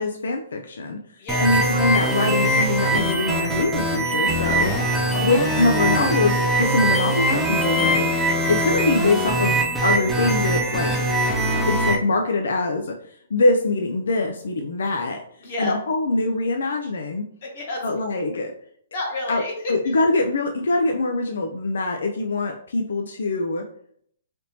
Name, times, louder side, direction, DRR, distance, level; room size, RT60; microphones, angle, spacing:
voice 1, 0.0-1.0 1.4-4.7 5.2-8.1 8.5-10.9 11.7-15.2 15.6-17.2 17.8-18.5 19.3-19.4 19.7-23.6, left 2 dB, 70° left, 3 dB, 0.4 m, -23 dB
voice 2, 1.2-1.7 4.5-6.0 15.4-15.7 17.4-17.9 18.9-19.9, left 2 dB, 35° left, -1 dB, 1.0 m, -31 dB
sound 1, 1.3-12.0, right 1 dB, 5° right, 0.3 m, -22 dB
3.4 x 2.6 x 2.8 m, 0.65 s
hypercardioid pair, 175°, 0 cm